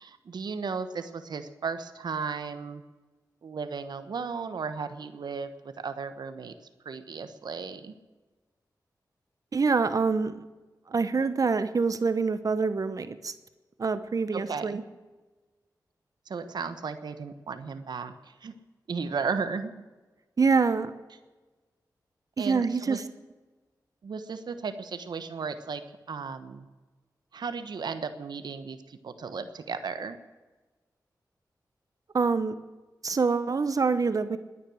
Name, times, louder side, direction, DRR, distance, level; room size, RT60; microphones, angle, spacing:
voice 1, 0.0-2.8 3.4-6.5 6.8-7.9 14.3-14.8 16.3-18.5 18.9-19.7 22.4-23.0 24.0-25.8 26.1-26.7 27.3-30.2, right 5 dB, 80° right, 10 dB, 1.2 m, -35 dB
voice 2, 9.5-10.4 10.9-13.3 13.8-14.8 20.4-20.9 22.4-23.0 32.1-32.5 33.0-34.4, right 4 dB, 55° right, 12 dB, 1.0 m, -25 dB
19.5 x 10.0 x 6.4 m, 1.2 s
wide cardioid pair, 80°, 7 cm